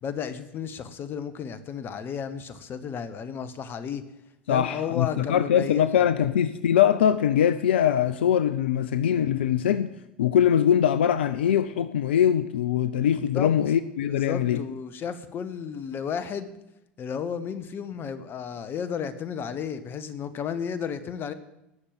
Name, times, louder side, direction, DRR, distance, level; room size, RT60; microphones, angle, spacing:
voice 1, 0.0-4.0 4.5-6.0 13.3-13.5 14.1-16.5 17.0-21.3, left 7 dB, 40° left, 13 dB, 1.4 m, -33 dB
voice 2, 4.5-9.9 10.2-14.6, left 9 dB, 75° left, 14 dB, 0.5 m, -22 dB
18.5 x 6.8 x 7.8 m, 0.87 s
hypercardioid pair, 80°, 6 cm